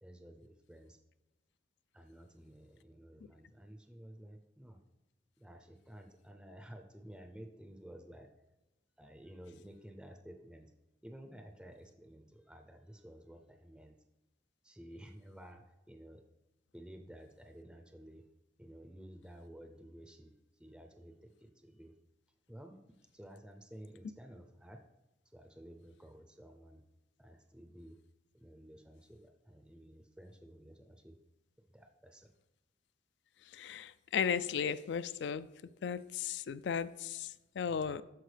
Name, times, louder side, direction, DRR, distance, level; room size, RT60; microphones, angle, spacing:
voice 1, 0.0-1.0 1.9-4.8 5.4-8.3 9.0-10.7 11.0-14.0 14.6-16.2 16.7-18.3 18.6-20.3 20.6-21.9 22.5-22.8 23.1-24.8 25.3-26.8 27.2-28.0 28.3-31.2 31.7-32.4, equal, 5° right, 5 dB, 0.5 m, -53 dB
voice 2, 33.5-35.5 35.8-38.0, left 7 dB, 65° left, 15 dB, 0.3 m, -35 dB
12.5 x 4.6 x 3.3 m, 1.0 s
head